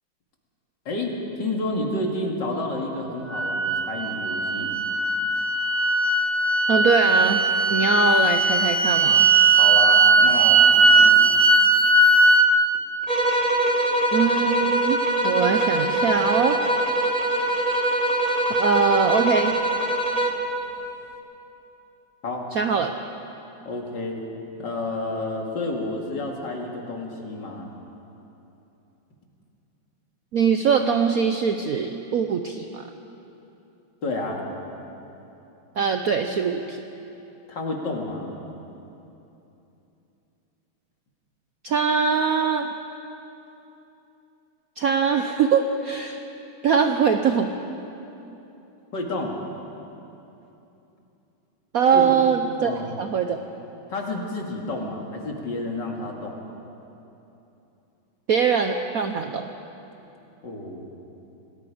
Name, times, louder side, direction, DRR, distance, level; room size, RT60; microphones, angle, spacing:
voice 1, 0.9-4.7 9.5-11.4 22.2-22.5 23.7-24.2 24.6-27.7 34.0-34.4 37.5-38.3 48.9-49.3 51.9-52.2 52.6-52.9 53.9-56.4 60.4-60.9, left 2 dB, 55° left, 0 dB, 2.8 m, -30 dB
sound 1, 3.3-12.5, right 3 dB, 45° right, 0.5 m, -18 dB
voice 2, 6.7-7.4 7.7-9.2 14.1-15.0 15.2-16.6 18.6-19.6 22.5-22.9 30.3-32.8 35.8-36.8 41.6-42.7 44.8-46.2 46.6-47.5 51.7-52.7 53.0-53.4 58.3-59.5, right 6 dB, 65° right, 6 dB, 0.9 m, -22 dB
sound 2, 13.1-20.5, right 1 dB, 20° right, 1.3 m, -23 dB
27.5 x 19.0 x 5.0 m, 2.9 s
omnidirectional pair, 2.3 m